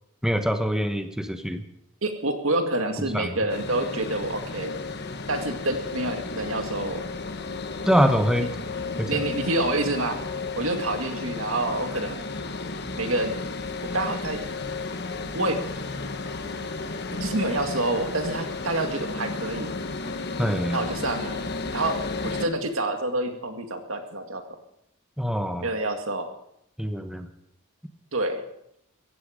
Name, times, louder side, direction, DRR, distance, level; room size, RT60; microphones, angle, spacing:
voice 1, 0.2-1.6 3.1-3.3 7.9-8.5 9.0-9.2 20.4-20.8 25.2-25.7 26.8-27.3, equal, 5° right, 7 dB, 1.1 m, -24 dB
voice 2, 2.0-4.7 5.3-7.0 9.1-10.2 10.6-12.2 12.9-13.3 13.8-14.4 15.3-15.6 17.1-19.7 20.7-21.4 21.7-24.4 25.6-26.3 28.1-28.4, right 2 dB, 65° right, 6 dB, 2.0 m, -27 dB
sound 1, 3.5-22.5, left 3 dB, 50° left, 1.2 m, -33 dB
16.0 x 15.0 x 5.1 m, 0.76 s
head